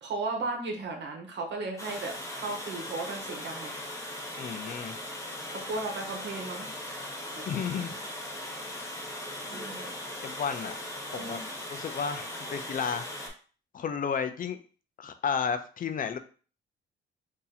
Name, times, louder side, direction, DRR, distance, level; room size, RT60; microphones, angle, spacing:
voice 1, 0.0-3.7 5.5-7.4 7.7-8.0 9.5-9.9 11.1-11.5, right 3 dB, 65° right, 2 dB, 1.1 m, -36 dB
Water, 1.8-13.3, left 1 dB, 15° left, 1.0 m, -39 dB
voice 2, 4.4-5.0 7.5-8.0 10.2-10.8 11.1-11.4 11.7-13.3 13.7-14.6 15.0-16.2, left 6 dB, 45° left, 9 dB, 0.4 m, -32 dB
2.9 x 2.8 x 3.9 m, 0.39 s
cardioid pair, 115°, 19 cm